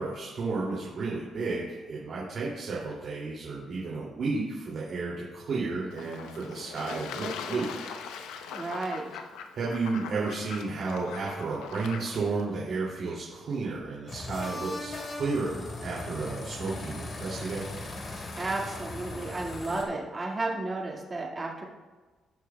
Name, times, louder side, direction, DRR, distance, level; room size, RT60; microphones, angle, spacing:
voice 1, 0.0-7.9 8.3-8.4 9.5-17.7, right 3 dB, 55° right, -5 dB, 2.5 m, -32 dB
Fowl / Bird / Water, 5.9-12.5, left 6 dB, 90° left, 0.7 m, -41 dB
voice 2, 8.5-9.2 18.4-21.6, right 2 dB, 30° right, -1 dB, 1.9 m, -33 dB
sound 1, 14.1-19.8, left 2 dB, 45° left, 2.5 m, -38 dB
18.5 x 6.5 x 2.3 m, 1.3 s
cardioid pair, 80°, 0 cm